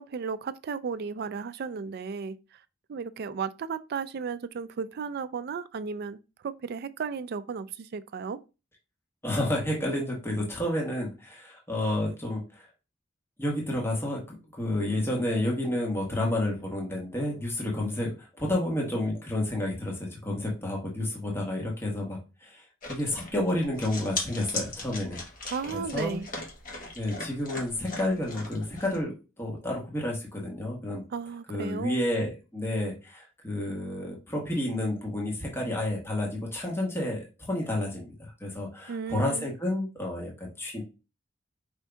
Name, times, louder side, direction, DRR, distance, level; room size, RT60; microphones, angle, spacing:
voice 1, 0.0-2.6 2.9-6.2 6.4-8.4 25.5-26.3 31.1-32.0 38.9-39.5, right 5 dB, 55° right, 0.4 m, -34 dB
voice 2, 9.2-12.7 13.4-25.2 25.7-26.2 27.0-31.0 31.5-40.8, left 1 dB, 10° left, 1.3 m, -30 dB
sound 1, 22.8-29.0, left 3 dB, 45° left, 1.3 m, -39 dB
5.1 x 2.7 x 3.4 m
head